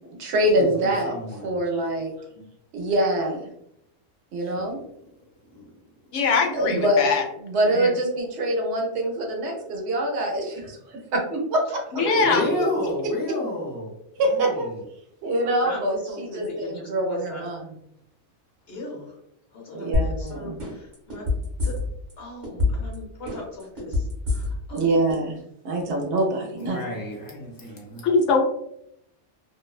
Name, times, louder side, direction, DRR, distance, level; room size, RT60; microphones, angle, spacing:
voice 1, 0.0-1.1 1.4-2.1 2.7-3.5 4.3-4.8 6.5-7.0 7.4-11.8 14.1-14.7 15.2-17.6 19.7-20.5 24.7-25.3 25.6-26.8, right 1 dB, 70° right, 1 dB, 0.9 m, -24 dB
voice 2, 0.5-1.5 4.4-4.8 5.5-5.7 12.2-13.9 14.2-14.8 26.6-28.1, left 1 dB, 25° left, -2 dB, 0.5 m, -31 dB
voice 3, 6.1-7.2 7.7-7.9 11.9-12.4 28.0-28.4, left 4 dB, 90° left, 3 dB, 0.9 m, -21 dB
voice 4, 12.0-12.6 15.6-17.4 18.7-19.2 19.5-21.3 21.6-21.8 22.2-25.0, left 1 dB, 60° left, -2 dB, 1.0 m, -37 dB
sound 1, 19.9-20.3 20.6-22.1 22.4-22.9 23.3-24.8 25.1-25.2, left 3 dB, 45° right, 0.9 m, -24 dB
2.5 x 2.1 x 2.3 m, 0.77 s
omnidirectional pair, 1.2 m